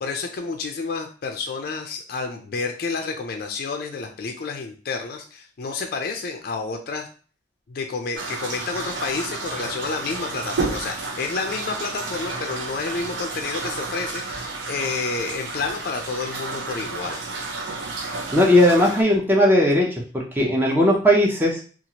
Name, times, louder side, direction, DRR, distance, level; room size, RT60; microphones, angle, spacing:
voice 1, 0.0-7.1 7.7-17.2, left 4 dB, 55° left, 4 dB, 0.4 m, -30 dB
sound 1, 8.1-19.0, right 3 dB, 75° right, 0.6 m, -31 dB
voice 2, 18.3-19.9 20.1-21.6, left 1 dB, 10° right, -2 dB, 0.5 m, -17 dB
2.9 x 2.4 x 2.8 m, 0.40 s
head